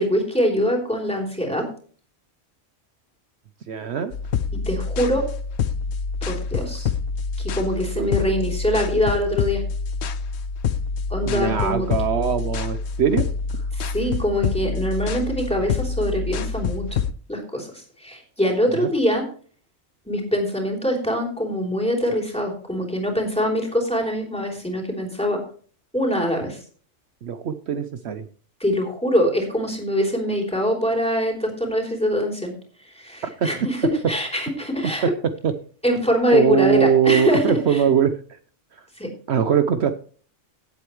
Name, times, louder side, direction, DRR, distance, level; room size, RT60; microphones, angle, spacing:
voice 1, 0.0-1.6 4.5-5.2 6.3-6.9 7.4-9.6 11.1-11.9 13.7-17.0 17.3-19.2 20.1-25.4 25.9-26.6 28.6-32.5 32.8-35.1 35.8-37.8 39.0-39.1, equal, 5° left, 0 dB, 3.3 m, -23 dB
voice 2, 3.7-4.1 8.0-8.1 11.2-13.3 18.7-18.9 27.2-28.2 35.0-35.1 35.4-35.5 36.3-38.2 39.3-39.9, right 8 dB, 65° right, 9 dB, 1.0 m, -21 dB
sound 1, 4.1-17.1, left 5 dB, 65° left, 0.9 m, -27 dB
16.5 x 8.2 x 3.1 m, 0.43 s
omnidirectional pair, 1.3 m